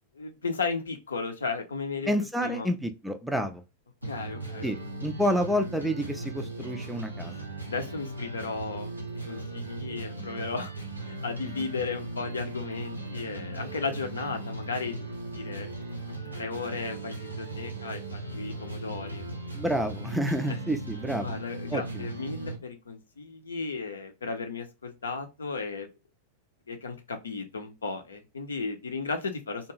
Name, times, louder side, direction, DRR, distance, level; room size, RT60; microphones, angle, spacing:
voice 1, 0.1-2.1 2.4-2.7 4.0-4.8 7.7-8.9 9.3-10.7 11.0-15.7 16.4-19.3 21.2-25.9 26.7-29.7, left 4 dB, 70° left, 6 dB, 0.6 m, -35 dB
voice 2, 2.0-3.6 4.6-7.3 19.5-21.4 21.7-22.1, equal, 5° right, 6 dB, 0.4 m, -29 dB
sound 1, 4.0-22.6, right 2 dB, 85° right, 0.7 m, -38 dB
2.5 x 2.3 x 3.0 m, 0.26 s
figure-of-eight pair, 90°, 0 cm